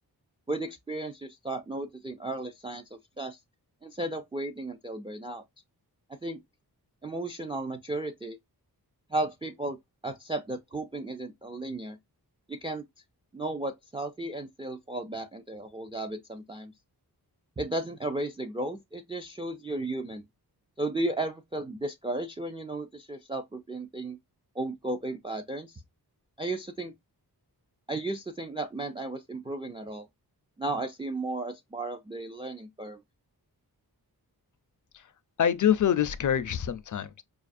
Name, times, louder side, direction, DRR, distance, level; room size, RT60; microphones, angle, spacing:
voice 1, 0.5-3.4 3.8-5.4 6.2-6.4 7.0-8.4 9.1-9.8 10.0-12.0 12.5-12.9 13.3-16.7 17.6-20.3 20.8-24.2 24.5-25.8 26.4-26.9 27.9-30.1 30.6-33.0, right 2 dB, 15° right, 0.3 m, -34 dB
voice 2, 35.4-37.2, left 9 dB, 50° left, 0.5 m, -25 dB
4.7 x 2.4 x 2.4 m
wide cardioid pair, 100°, 39 cm